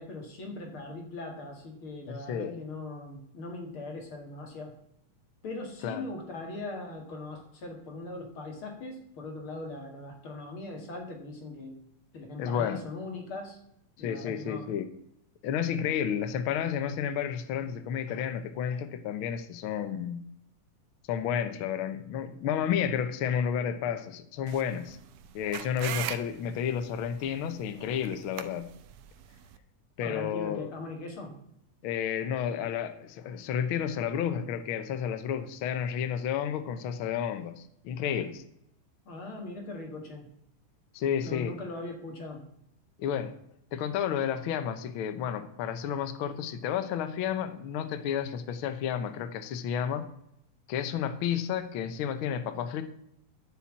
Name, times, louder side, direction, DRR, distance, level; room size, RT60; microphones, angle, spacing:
voice 1, 0.0-4.7 5.4-11.8 12.1-13.6 14.0-14.8 30.0-31.4 39.1-40.3 41.2-42.4, left 2 dB, 45° left, 3 dB, 2.4 m, -40 dB
voice 2, 2.1-2.5 5.8-6.0 12.4-12.8 14.0-14.9 15.4-20.2 21.1-25.0 25.3-28.7 30.0-30.7 31.8-38.4 40.9-41.5 43.0-43.3 43.7-50.0 50.7-52.8, left 8 dB, 90° left, 9 dB, 1.1 m, -31 dB
sound 1, 24.5-29.6, right 11 dB, 75° right, 1.6 m, -41 dB
10.5 x 5.7 x 8.5 m, 0.73 s
omnidirectional pair, 3.7 m